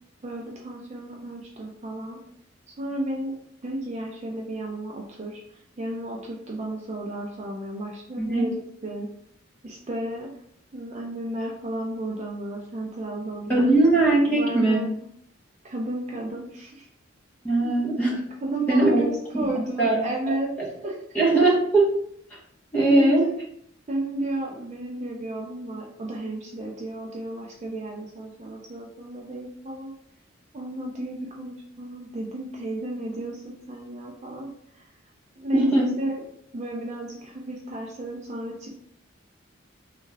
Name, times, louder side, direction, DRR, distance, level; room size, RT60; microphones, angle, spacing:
voice 1, 0.2-2.2 2.8-3.3 3.6-9.1 9.6-10.3 10.7-13.6 14.3-14.9 15.6-16.9 17.5-17.8 18.4-20.5 20.8-21.2 22.9-23.4 23.9-29.9 30.5-34.9 35.4-36.2 36.5-38.7, right 1 dB, 35° right, -1 dB, 0.4 m, -33 dB
voice 2, 13.5-14.8 17.4-18.2 18.7-19.0 19.4-19.5 19.8-20.0 20.3-20.4 21.1-21.9 22.7-23.3 35.5-35.9, right 2 dB, 10° left, -5 dB, 0.9 m, -20 dB
3.2 x 2.3 x 3.3 m, 0.68 s
head